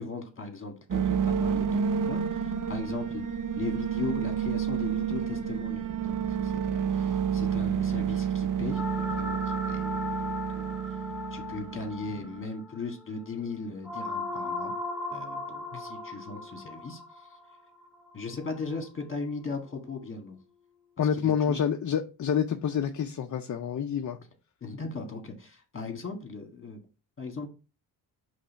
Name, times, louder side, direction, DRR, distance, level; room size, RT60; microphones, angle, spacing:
voice 1, 0.0-3.2 3.6-10.8 11.3-14.7 15.1-17.4 18.1-20.4 21.0-21.6 24.6-26.8 27.2-27.5, left 4 dB, 30° left, 1.7 m, -38 dB
sound 1, 0.9-12.4, right 8 dB, 45° right, 0.6 m, -30 dB
sound 2, 8.7-18.9, left 3 dB, 5° right, 0.8 m, -38 dB
voice 2, 21.0-24.2, left 8 dB, 45° left, 0.6 m, -28 dB
5.5 x 3.3 x 5.6 m
cardioid pair, 115°, 44 cm